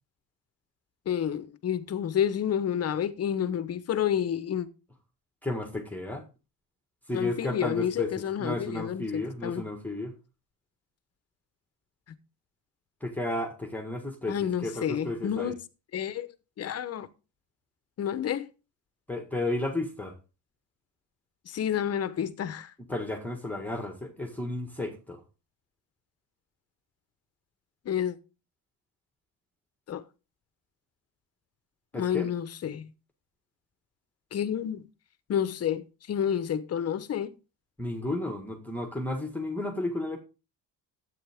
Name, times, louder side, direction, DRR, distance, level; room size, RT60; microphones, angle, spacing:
voice 1, 1.1-4.7 7.1-9.6 14.3-15.5 15.9-16.3 16.6-17.1 18.0-18.5 21.5-22.7 27.8-28.2 29.9-30.0 31.9-32.9 34.3-34.9 35.3-37.3, left 9 dB, 40° left, 1.1 m, -29 dB
voice 2, 5.4-6.3 7.1-8.1 8.4-10.1 13.0-14.4 14.6-15.5 19.1-20.2 22.9-25.2 31.9-32.3 37.8-40.2, left 2 dB, 5° left, 1.7 m, -33 dB
12.5 x 8.7 x 3.6 m
cardioid pair, 135°, 37 cm